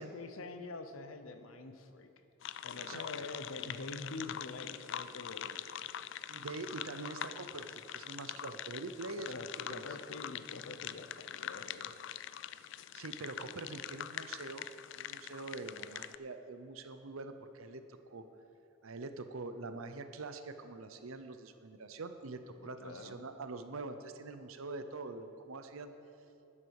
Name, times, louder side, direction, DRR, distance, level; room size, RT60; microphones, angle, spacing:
voice 1, 0.0-2.1 2.6-5.8 9.3-11.9 22.6-23.2, left 3 dB, 80° left, 8 dB, 0.8 m, -46 dB
sound 1, 2.4-16.2, left 11 dB, 60° left, 0.3 m, -44 dB
voice 2, 2.7-3.3 3.6-3.9 6.3-9.8 12.9-14.7 14.9-18.2 18.8-25.9, right 3 dB, 80° right, 9 dB, 0.8 m, -45 dB
12.0 x 9.9 x 4.8 m, 2.7 s
head